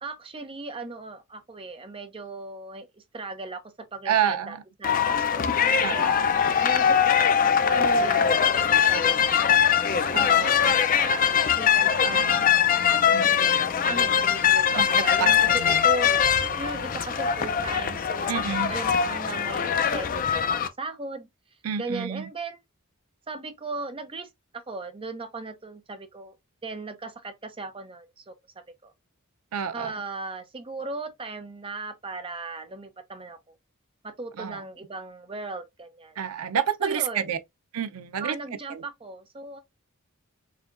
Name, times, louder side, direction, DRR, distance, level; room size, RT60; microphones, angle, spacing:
voice 1, 0.0-5.5 5.8-6.1 6.6-7.3 7.7-12.3 12.6-16.1 16.6-21.3 21.8-22.6 23.3-26.4 26.6-28.9 29.7-33.5 34.0-36.2 36.8-37.3 38.2-39.6, right 3 dB, 25° right, 0.6 m, -37 dB
voice 2, 4.1-4.6 5.8-6.3 10.1-10.8 12.0-12.4 13.1-13.5 14.8-15.9 18.3-18.7 21.6-22.3 29.5-30.0 34.4-34.6 36.2-37.4 37.7-38.4 38.7-38.8, right 8 dB, 85° right, 0.5 m, -29 dB
sound 1, 4.8-20.7, left 8 dB, 40° left, 0.4 m, -22 dB
5.0 x 2.8 x 2.4 m
head